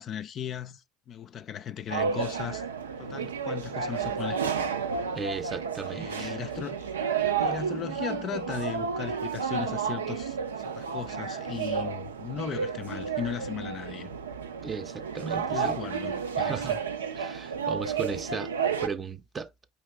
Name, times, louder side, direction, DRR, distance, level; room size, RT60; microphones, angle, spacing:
voice 1, 0.0-2.6 3.0-4.7 5.9-6.9 7.4-10.4 10.6-14.1 15.4-16.8, left 9 dB, 45° left, 0.4 m, -37 dB
sound 1, 1.9-18.9, right 6 dB, 85° right, 0.4 m, -31 dB
voice 2, 5.1-6.4 14.6-15.8 16.4-16.8 17.1-18.5 18.8-19.5, right 5 dB, 30° right, 0.6 m, -35 dB
5.1 x 2.9 x 3.1 m
hypercardioid pair, 70°, 0 cm